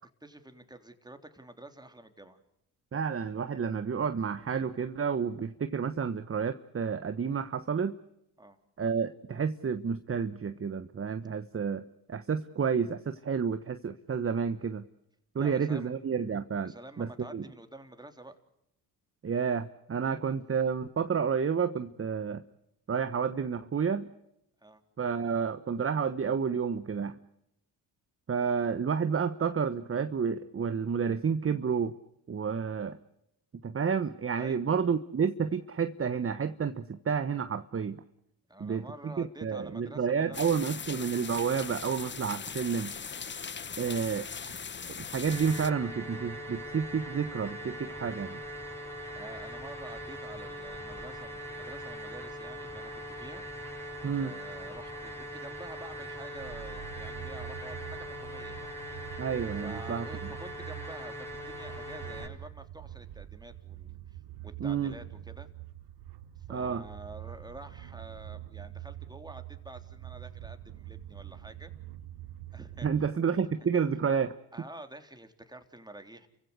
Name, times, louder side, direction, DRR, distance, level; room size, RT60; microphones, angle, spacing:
voice 1, 0.2-2.4 8.4-8.6 15.4-15.9 16.6-18.4 24.6-24.8 34.4-34.6 38.5-41.0 43.8-44.0 48.8-53.5 54.2-58.8 59.5-65.5 66.5-71.7 72.5-73.5 74.5-76.3, right 1 dB, 10° right, 7 dB, 3.5 m, -48 dB
voice 2, 2.9-7.9 8.8-11.8 12.1-14.8 15.3-16.7 17.0-17.4 19.2-22.4 22.9-24.1 25.0-27.2 28.3-31.9 32.3-33.0 33.6-38.0 38.6-42.9 43.8-44.5 45.1-48.4 54.0-54.3 59.2-60.1 64.6-64.9 66.5-66.8 72.8-74.3, right 6 dB, 30° right, 11 dB, 1.2 m, -30 dB
sound 1, 40.3-45.7, left 6 dB, 25° left, 0.9 m, -40 dB
sound 2, 45.3-62.3, equal, 5° left, 6.2 m, -41 dB
sound 3, 56.3-73.1, right 12 dB, 70° right, 1.3 m, -45 dB
30.0 x 16.0 x 8.2 m, 0.80 s
supercardioid pair, 60°, 42 cm